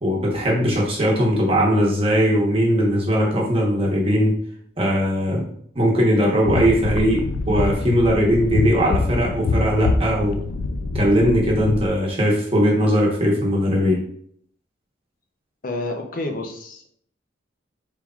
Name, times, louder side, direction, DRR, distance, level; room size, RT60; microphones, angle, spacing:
voice 1, 0.0-4.3 4.8-5.4 5.7-10.4 10.9-14.0, equal, 30° right, -3 dB, 1.0 m, -19 dB
sound 1, 6.4-11.9, left 3 dB, 90° left, 0.4 m, -24 dB
voice 2, 15.6-16.9, left 2 dB, 45° left, 3 dB, 0.6 m, -29 dB
4.5 x 3.7 x 2.3 m, 0.64 s
head